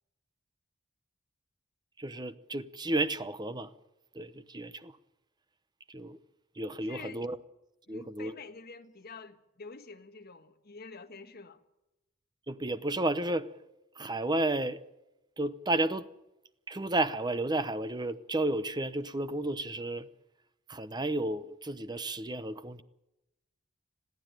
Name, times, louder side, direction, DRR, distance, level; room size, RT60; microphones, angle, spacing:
voice 1, 2.0-3.7 4.1-5.0 5.9-6.2 6.6-7.4 7.9-8.3 12.5-13.5 13.9-14.8 15.4-16.1 16.7-20.1 20.7-22.8, right 2 dB, 20° right, 0.9 m, -32 dB
voice 2, 6.9-7.3 7.9-11.6, left 4 dB, 50° left, 1.6 m, -47 dB
22.0 x 15.0 x 9.1 m
head